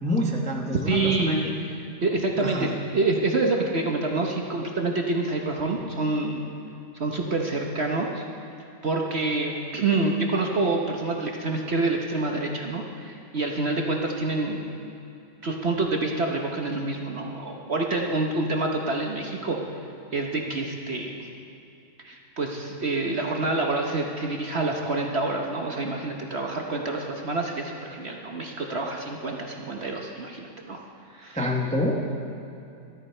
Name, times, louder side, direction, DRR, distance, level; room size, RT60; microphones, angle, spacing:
voice 1, 0.0-1.4 2.4-2.7 31.4-32.0, left 1 dB, 5° left, 0 dB, 0.7 m, -26 dB
voice 2, 0.9-1.5 2.0-6.4 6.9-8.2 8.8-14.6 15.4-19.6 20.1-21.3 22.0-30.8 31.1-31.4, right 2 dB, 45° right, 1 dB, 1.0 m, -27 dB
14.5 x 12.5 x 4.4 m, 2.6 s
omnidirectional pair, 1.8 m